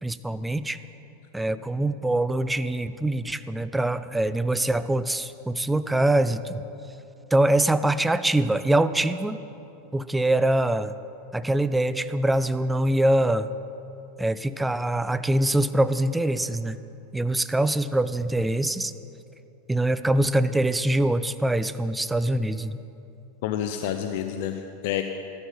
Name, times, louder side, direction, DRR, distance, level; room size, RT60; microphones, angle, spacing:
voice 1, 0.0-0.8 1.3-6.6 7.3-9.4 9.9-10.9 11.3-13.5 14.2-16.8 17.1-18.9 19.7-22.8, right 1 dB, 10° right, 13 dB, 0.5 m, -24 dB
voice 2, 23.4-25.0, left 10 dB, 65° left, 6 dB, 0.7 m, -29 dB
14.5 x 12.5 x 5.2 m, 2.9 s
hypercardioid pair, 115°, 0 cm